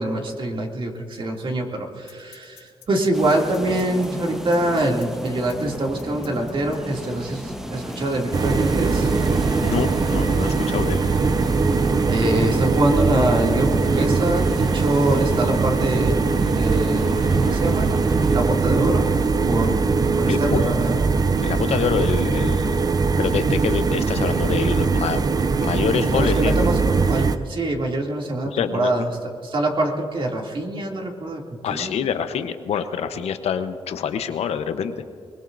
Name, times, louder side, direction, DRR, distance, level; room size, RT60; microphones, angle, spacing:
voice 1, 0.0-9.1 12.1-18.0 18.3-19.1 19.5-19.7 20.1-21.0 26.1-29.1 29.4-31.4 31.7-32.0, right 1 dB, 50° right, 0 dB, 2.6 m, -24 dB
sound 1, 2.1-6.8, left 10 dB, 90° left, 3.8 m, -47 dB
sound 2, 3.1-18.4, equal, 5° right, 1.4 m, -34 dB
sound 3, 8.3-27.4, right 4 dB, 35° right, 0.7 m, -21 dB
voice 2, 9.6-11.0 20.3-20.7 21.4-22.9 23.2-25.2 25.6-26.7 28.4-28.9 31.6-34.9, left 7 dB, 75° left, 9 dB, 0.9 m, -26 dB
23.0 x 21.0 x 2.7 m, 2.3 s
cardioid pair, 70°, 11 cm